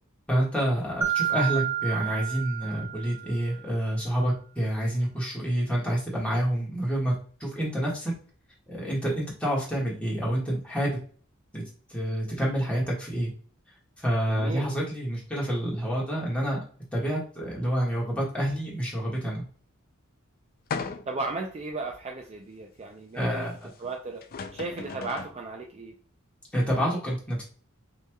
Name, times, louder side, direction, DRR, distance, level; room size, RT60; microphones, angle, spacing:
voice 1, 0.3-7.1 7.4-8.1 8.7-11.0 11.5-11.6 11.9-13.3 14.0-16.6 16.9-19.4 23.1-23.7 26.5-27.4, right 1 dB, 5° left, -5 dB, 1.7 m, -28 dB
Mallet percussion, 1.0-3.6, right 10 dB, 15° right, 1.1 m, -30 dB
voice 2, 14.3-14.7 21.1-23.5 23.8-24.2 24.5-25.9, right 3 dB, 30° right, 2 dB, 0.4 m, -35 dB
sound 1, 20.7-21.3 21.9-22.0 23.8-23.9 24.2-25.4, left 5 dB, 45° left, 0.4 m, -36 dB
5.6 x 3.1 x 2.3 m, 0.42 s
head